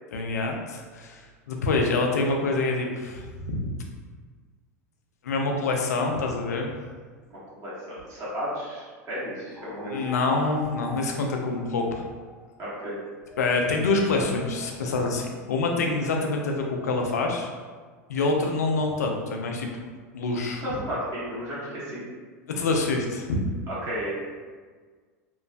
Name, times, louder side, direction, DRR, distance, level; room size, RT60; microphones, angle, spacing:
voice 1, 0.1-1.2 1.5-3.7 5.2-6.7 9.8-12.1 13.4-17.5 18.1-19.8 20.1-20.6 22.5-23.4, left 3 dB, 85° left, 2 dB, 0.4 m, -26 dB
voice 2, 7.5-10.1 12.6-13.0 20.6-22.0 23.7-24.1, equal, 40° right, -9 dB, 1.2 m, -33 dB
sound 1, 9.6-12.7 13.2-17.9, left 1 dB, 10° left, 0.3 m, -45 dB
2.9 x 2.1 x 2.5 m, 1.5 s
hypercardioid pair, 95°, 9 cm